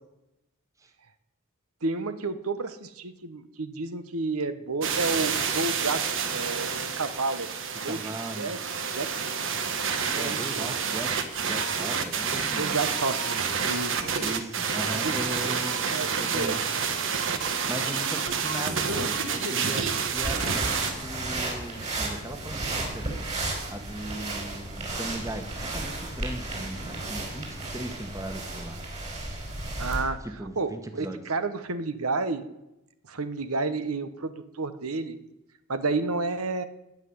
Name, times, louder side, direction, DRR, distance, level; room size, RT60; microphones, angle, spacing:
voice 1, 1.8-6.0 6.3-7.5 7.8-8.0 8.4-8.6 8.9-9.3 10.1-10.7 12.6-14.2 14.9-15.1 15.4-15.6 15.9-16.6 29.8-30.2 30.6-32.5 33.1-35.2 35.7-36.6, right 3 dB, 80° right, 11 dB, 1.1 m, -31 dB
sound 1, 4.8-20.9, right 6 dB, 60° right, 1.4 m, -29 dB
voice 2, 7.8-8.5 10.1-12.7 14.2-15.8 16.2-16.6 17.7-23.2 23.7-28.8 30.2-31.2, right 1 dB, 15° right, 7 dB, 1.5 m, -38 dB
sound 2, 20.1-30.1, right 2 dB, 30° right, 3.9 m, -33 dB
17.5 x 6.0 x 9.6 m, 0.90 s
head